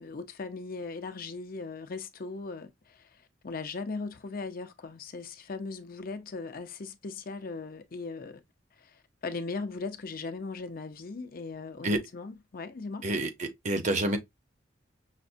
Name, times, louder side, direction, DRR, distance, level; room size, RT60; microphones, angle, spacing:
voice 1, 0.0-3.1 3.4-8.4 8.8-13.1, left 3 dB, 50° left, 0.6 m, -38 dB
voice 2, 13.0-14.2, right 1 dB, 40° right, 0.7 m, -28 dB
5.8 x 2.1 x 2.5 m
head